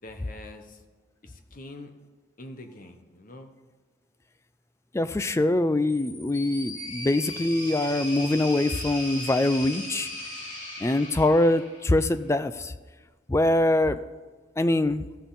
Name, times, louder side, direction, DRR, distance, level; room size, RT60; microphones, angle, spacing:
voice 1, 0.0-0.8 1.2-1.9 2.4-3.5, left 1 dB, 45° left, 6 dB, 0.9 m, -44 dB
voice 2, 4.9-10.1 10.8-12.7 13.3-14.0 14.6-15.1, left 1 dB, 15° left, 12 dB, 0.3 m, -23 dB
sound 1, 5.9-12.1, left 1 dB, 90° left, 2.4 m, -38 dB
15.5 x 6.2 x 4.0 m, 1.4 s
head